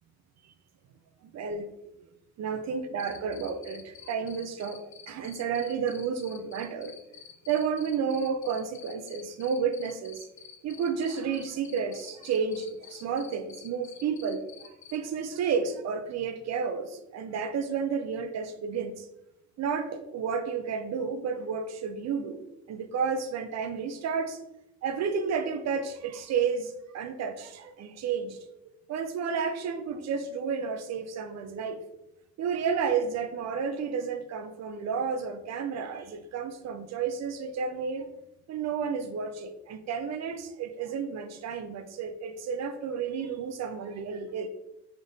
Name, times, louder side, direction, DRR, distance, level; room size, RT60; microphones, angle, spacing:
voice 1, 1.3-1.7 2.4-6.9 7.5-10.3 10.6-14.5 14.9-19.1 19.6-22.4 22.7-24.4 24.8-28.4 28.9-31.8 32.4-38.1 38.5-44.5, right 6 dB, 60° right, 9 dB, 0.5 m, -31 dB
Cricket, 3.0-15.0, left 9 dB, 65° left, 0.6 m, -48 dB
3.6 x 2.5 x 3.9 m, 0.90 s
cardioid pair, 90°, 30 cm